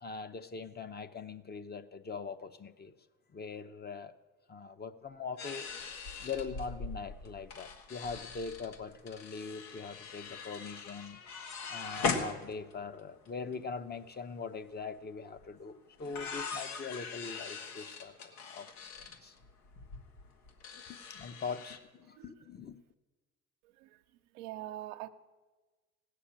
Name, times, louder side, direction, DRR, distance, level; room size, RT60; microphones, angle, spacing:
voice 1, 0.0-2.9 3.3-4.1 4.5-5.7 6.2-11.2 11.7-18.7 19.0-19.3 20.9-22.8, left 5 dB, 30° left, 0.9 m, -42 dB
sound 1, 5.4-13.0 13.3-13.4 13.5-13.9 15.4-15.5 16.0-21.8, left 5 dB, 80° left, 1.8 m, -41 dB
voice 2, 23.6-24.0 24.3-25.1, right 15 dB, 90° right, 0.9 m, -44 dB
16.5 x 6.7 x 8.8 m
supercardioid pair, 90°, 35 cm